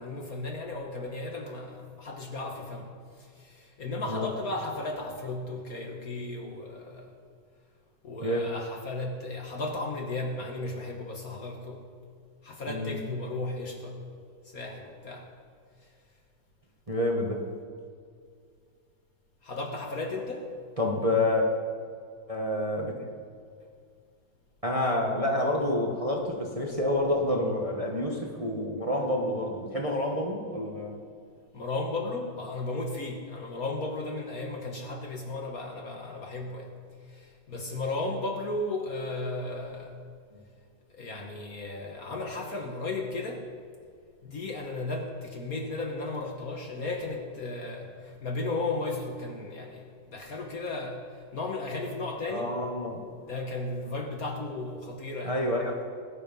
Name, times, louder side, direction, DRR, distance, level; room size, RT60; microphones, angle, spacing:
voice 1, 0.0-2.9 3.2-7.1 8.0-11.8 12.4-14.0 14.4-15.3 15.8-15.9 19.4-20.5 31.5-36.7 37.0-40.0 40.9-43.5 44.2-52.5 53.2-55.4, left 2 dB, 50° left, 2 dB, 1.5 m, -35 dB
voice 2, 12.7-13.0 16.9-17.4 20.8-21.4 22.3-22.9 24.6-31.0 52.3-53.0 55.2-55.8, left 1 dB, 20° right, 0 dB, 1.3 m, -28 dB
19.0 x 9.7 x 5.4 m, 2.2 s
omnidirectional pair, 2.2 m